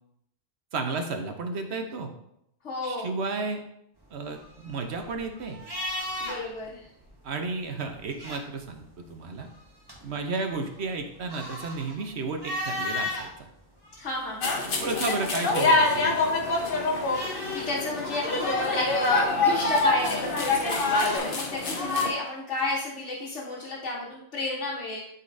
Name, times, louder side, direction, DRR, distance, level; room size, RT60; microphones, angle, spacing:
voice 1, 0.7-2.1 2.8-3.6 4.1-5.6 7.2-9.5 10.0-13.5 14.8-16.2, right 3 dB, 70° right, 5 dB, 1.1 m, -32 dB
voice 2, 2.6-3.2 6.2-6.9 14.0-14.5 17.5-20.8 21.2-25.0, left 2 dB, 85° left, -6 dB, 1.4 m, -32 dB
sound 1, 4.1-6.7 6.9-7.1 7.9-8.8 9.4-13.3 13.8-14.8 16.3-21.2, left 1 dB, 20° right, 1.4 m, -37 dB
sound 2, 14.4-22.1, left 3 dB, 55° left, 1.1 m, -25 dB
11.5 x 4.2 x 2.6 m, 0.77 s
omnidirectional pair, 1.2 m